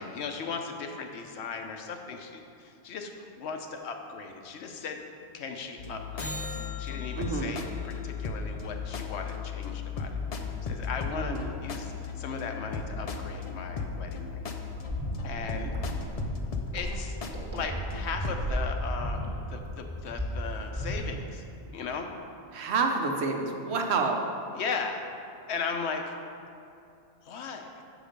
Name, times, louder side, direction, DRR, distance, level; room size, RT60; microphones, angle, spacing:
voice 1, 0.0-5.0 5.3-6.5 6.8-14.4 15.2-15.8 16.7-17.2 17.5-21.5 21.7-22.1 24.5-25.1 25.5-26.1 27.2-27.8, left 5 dB, 80° left, 4 dB, 0.9 m, -37 dB
sound 1, 5.8-18.5, left 5 dB, 50° left, 0.5 m, -36 dB
sound 2, 6.2-10.6 17.2-17.3, left 1 dB, ahead, 1.0 m, -45 dB
voice 2, 7.2-7.6 11.1-11.5 22.5-24.2, right 4 dB, 75° right, 3 dB, 1.0 m, -28 dB
sound 3, 14.8-21.3, equal, 25° right, 1.2 m, -34 dB
7.5 x 5.0 x 5.1 m, 2.6 s
omnidirectional pair, 1.1 m